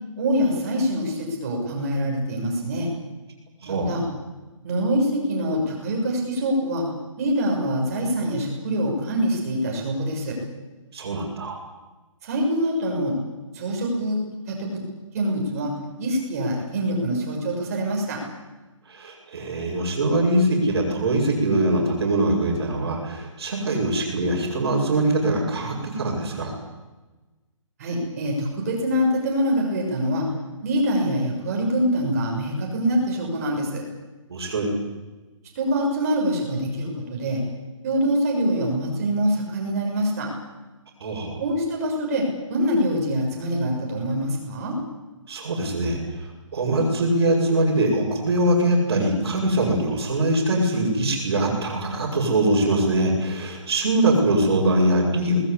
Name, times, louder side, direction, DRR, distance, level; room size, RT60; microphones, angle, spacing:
voice 1, 0.2-2.9 3.6-4.0 4.6-6.9 7.2-10.4 12.2-13.1 13.5-14.2 14.5-14.8 15.1-15.7 16.0-18.2 27.8-30.3 30.6-33.8 35.5-37.4 37.8-40.3 41.4-44.8, equal, 30° right, 0 dB, 6.8 m, -24 dB
voice 2, 10.9-11.6 18.9-26.5 34.3-34.7 41.0-41.4 45.3-46.0 46.5-55.4, right 1 dB, 45° right, -6 dB, 6.8 m, -22 dB
23.5 x 20.5 x 8.8 m, 1.2 s
hypercardioid pair, 170°, 17 cm